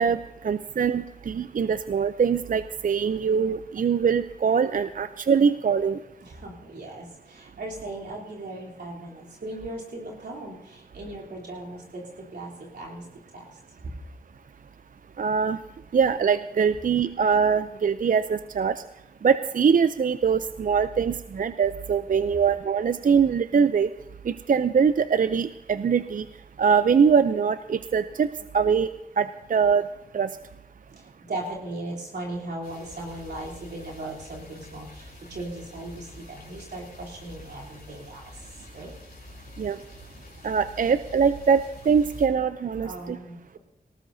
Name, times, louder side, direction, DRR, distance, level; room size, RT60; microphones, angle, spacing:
voice 1, 0.0-6.0 15.2-15.6 15.9-18.8 19.2-23.9 24.3-26.2 26.6-28.3 28.5-28.9 29.2-29.9 30.1-30.3 39.6-39.8 40.4-43.2, right 6 dB, 55° right, 12 dB, 0.4 m, -23 dB
voice 2, 6.2-13.0 13.3-13.6 20.9-21.0 30.9-38.3 38.7-38.9 42.8-43.6, right 2 dB, 90° right, -4 dB, 3.4 m, -38 dB
sound 1, 32.6-42.3, left 1 dB, 70° left, 3.7 m, -47 dB
18.5 x 18.5 x 2.7 m, 0.91 s
cardioid pair, 40°, 17 cm